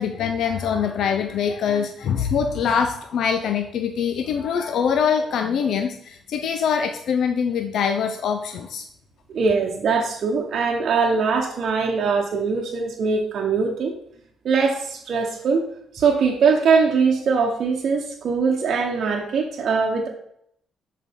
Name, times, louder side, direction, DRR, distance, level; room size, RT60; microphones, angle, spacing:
voice 1, 0.0-8.8, left 7 dB, 70° left, 6 dB, 0.5 m, -23 dB
voice 2, 9.3-13.9 14.4-15.6 15.9-20.1, right 5 dB, 60° right, -1 dB, 0.9 m, -21 dB
6.6 x 4.6 x 3.6 m, 0.69 s
cardioid pair, 90°, 0 cm